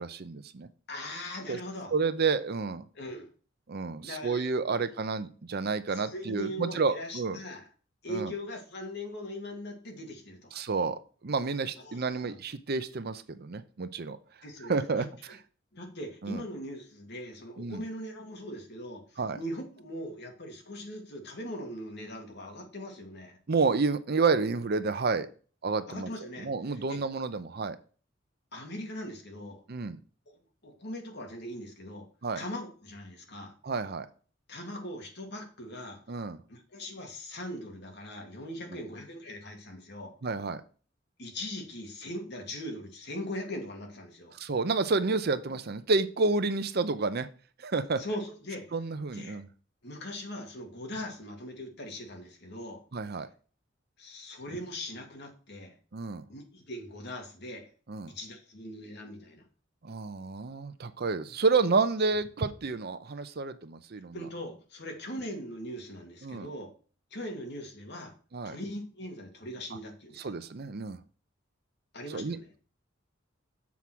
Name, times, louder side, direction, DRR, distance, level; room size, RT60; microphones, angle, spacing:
voice 1, 0.0-0.7 1.5-1.6 1.9-2.8 3.7-7.4 8.1-8.3 10.5-11.0 11.2-14.2 14.6-15.4 16.2-16.4 17.6-17.8 19.2-19.4 23.5-25.3 25.6-26.1 26.4-27.8 29.7-30.0 32.2-32.4 33.6-34.1 36.1-36.4 40.2-40.6 44.3-47.3 47.6-48.0 48.7-49.5 52.9-53.3 55.9-56.2 57.9-58.1 59.8-64.2 66.2-66.5 68.3-68.6 70.2-71.0 72.1-72.4, right 4 dB, 55° right, 12 dB, 0.6 m, -30 dB
voice 2, 0.9-1.9 2.9-3.3 4.0-4.5 4.8-4.9 5.9-7.7 8.0-10.5 11.8-12.3 14.4-14.7 15.0-15.1 15.7-23.4 25.9-27.1 28.5-29.6 30.3-32.1 32.4-33.6 34.5-36.0 36.5-40.2 41.2-44.4 48.0-48.7 49.1-49.4 49.8-52.8 54.0-55.8 56.3-57.7 58.1-59.5 64.1-66.7 67.1-68.1 68.4-70.4 71.9-72.5, left 1 dB, 60° left, 3 dB, 2.0 m, -40 dB
7.1 x 4.8 x 6.0 m, 0.39 s
head